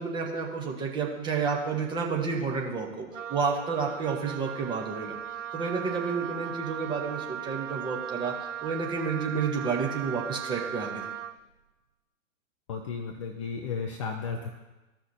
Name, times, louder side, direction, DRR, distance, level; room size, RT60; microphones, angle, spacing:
voice 1, 0.0-5.2 5.5-11.0, right 5 dB, 10° right, 0 dB, 0.8 m, -30 dB
Wind instrument woodwind instrument, 3.1-11.4, right 10 dB, 65° right, 0.5 m, -38 dB
voice 2, 12.7-14.5, left 5 dB, 25° left, 3 dB, 0.5 m, -34 dB
14.5 x 5.8 x 2.7 m, 1.1 s
figure-of-eight pair, 115°, 40 cm